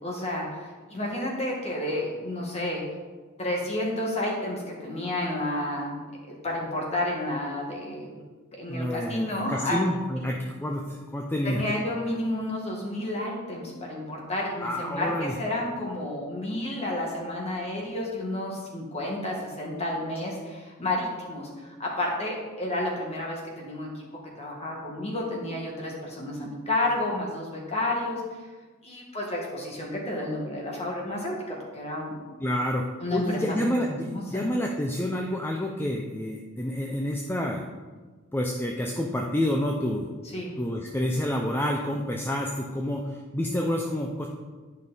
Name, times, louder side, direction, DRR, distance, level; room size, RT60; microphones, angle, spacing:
voice 1, 0.0-2.8 3.4-5.9 6.4-8.1 8.5-9.8 11.4-23.9 24.4-28.2 28.8-32.2 33.0-33.6 34.0-34.4 40.3-40.5, left 1 dB, 30° left, -2 dB, 1.8 m, -31 dB
voice 2, 8.7-11.6 14.6-15.3 32.4-32.9 33.1-37.6 38.3-40.1 40.6-44.3, left 1 dB, 10° left, 0 dB, 0.5 m, -28 dB
11.0 x 5.4 x 4.0 m, 1.3 s
head